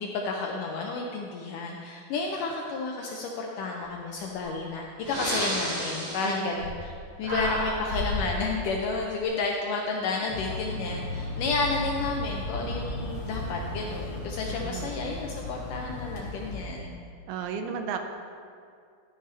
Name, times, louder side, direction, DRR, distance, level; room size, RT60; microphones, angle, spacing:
voice 1, 0.0-17.0, left 3 dB, 80° left, 0 dB, 1.9 m, -31 dB
Breathing, 4.4-4.5 5.0-7.0 7.2-8.3, equal, 40° right, 3.0 m, -31 dB
voice 2, 6.2-6.6 14.6-14.9 17.3-18.0, right 6 dB, 80° right, 6 dB, 2.5 m, -34 dB
sound 1, 10.3-16.6, left 2 dB, 50° left, 1.9 m, -35 dB
13.0 x 10.0 x 3.3 m, 2.3 s
omnidirectional pair, 4.5 m